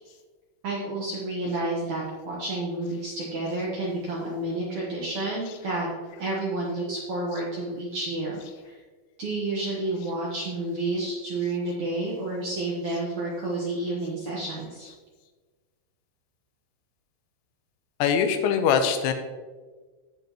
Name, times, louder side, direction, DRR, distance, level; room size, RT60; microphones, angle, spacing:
voice 1, 0.6-5.9 6.2-8.8 9.2-14.9, right 2 dB, 85° right, -5 dB, 1.6 m, -30 dB
voice 2, 18.0-19.1, left 7 dB, 80° left, 7 dB, 3.1 m, -22 dB
16.0 x 5.7 x 3.0 m, 1.4 s
omnidirectional pair, 5.4 m